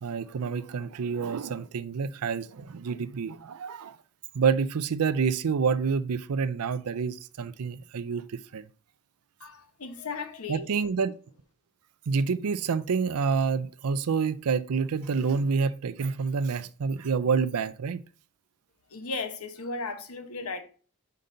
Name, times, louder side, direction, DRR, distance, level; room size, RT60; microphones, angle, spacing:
voice 1, 0.0-4.0 4.3-8.7 10.5-11.1 12.1-18.0, right 5 dB, 85° right, 0.5 m, -28 dB
voice 2, 9.4-10.7 18.9-20.6, left 3 dB, 75° left, 0.9 m, -36 dB
5.5 x 5.2 x 3.8 m
head